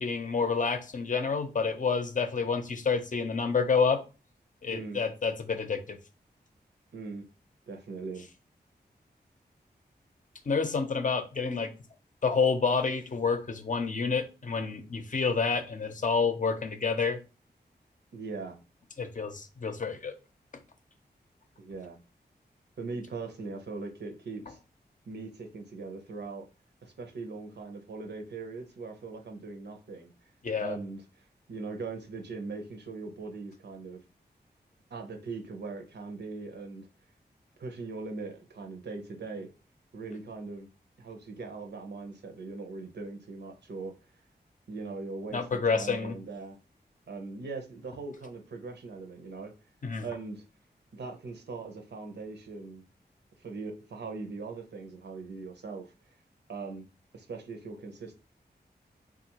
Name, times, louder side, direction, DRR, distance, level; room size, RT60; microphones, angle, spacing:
voice 1, 0.0-4.0 4.6-6.0 10.5-11.7 12.2-17.2 19.0-20.1 30.4-30.8 45.3-46.1 49.8-50.1, left 5 dB, 50° left, 7 dB, 0.6 m, -28 dB
voice 2, 4.7-5.0 6.9-7.2 7.7-8.3 18.1-18.6 21.6-22.0 22.8-24.6 25.1-26.5 26.8-30.1 30.6-31.0 31.5-34.0 34.9-36.9 37.6-39.5 39.9-40.7 41.0-43.9 44.7-46.6 47.1-49.5 50.0-50.4 50.9-52.8 53.4-55.9 56.5-56.9 57.1-58.1, right 3 dB, 80° right, 4 dB, 0.7 m, -40 dB
3.6 x 2.4 x 2.9 m, 0.32 s
cardioid pair, 55°, 18 cm